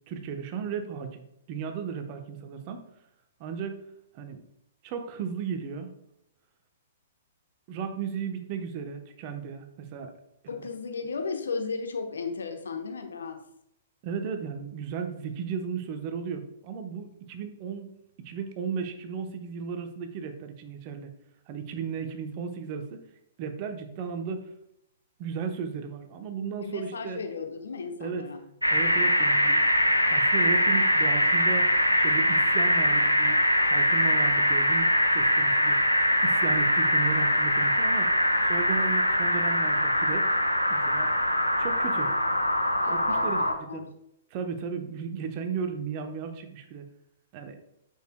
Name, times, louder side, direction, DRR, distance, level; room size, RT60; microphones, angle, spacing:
voice 1, 0.1-2.9 3.4-3.9 4.1-4.4 4.8-5.9 7.7-10.1 14.0-21.1 21.5-23.0 23.4-24.5 25.2-27.2 28.0-28.2 28.7-29.6 30.1-36.0 36.2-38.1 38.4-40.3 40.7-41.1 41.6-42.1 42.9-43.9 44.3-46.8 47.3-47.6, right 6 dB, 35° right, 6 dB, 0.9 m, -35 dB
voice 2, 10.5-13.4 26.6-28.4 42.0-42.1 42.8-43.9, left 4 dB, 65° left, 5 dB, 0.9 m, -35 dB
sound 1, 28.6-43.5, equal, 90° left, 0.7 m, -23 dB
8.2 x 6.6 x 2.2 m, 0.79 s
figure-of-eight pair, 115°, 0 cm